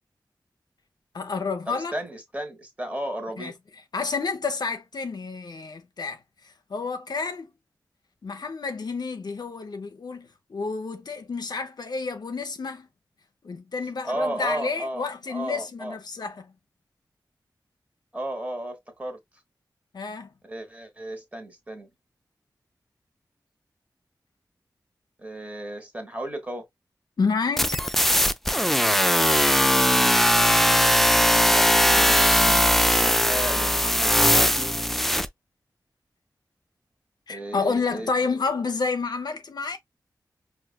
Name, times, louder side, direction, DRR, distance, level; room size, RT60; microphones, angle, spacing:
voice 1, 1.1-1.9 3.4-3.5 3.9-6.2 6.7-7.5 8.2-12.9 13.4-16.5 19.9-20.3 27.2-27.9 37.3-39.8, left 4 dB, 65° left, 0.6 m, -29 dB
voice 2, 1.7-3.6 14.0-15.0 15.3-16.0 18.1-19.2 20.4-21.9 25.2-26.7 31.5-34.8 37.3-38.1, right 1 dB, 20° right, 1.3 m, -34 dB
sound 1, 27.6-35.3, equal, 5° left, 0.3 m, -19 dB
4.7 x 2.5 x 2.2 m
cardioid pair, 50°, 8 cm